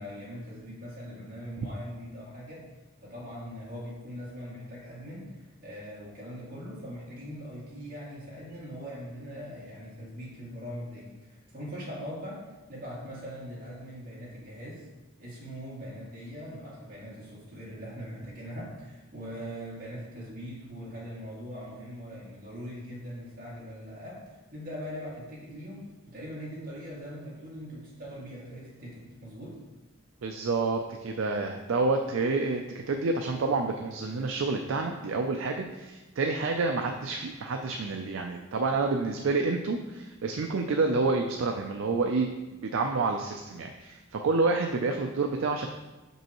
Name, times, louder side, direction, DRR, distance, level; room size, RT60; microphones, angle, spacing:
voice 1, 0.0-2.6 3.0-12.4 12.7-14.9 15.2-24.2 24.5-29.6, equal, 45° right, -7 dB, 2.1 m, -41 dB
voice 2, 30.2-42.3 42.6-45.7, right 3 dB, 70° right, 4 dB, 0.4 m, -28 dB
6.2 x 5.4 x 3.0 m, 1.1 s
head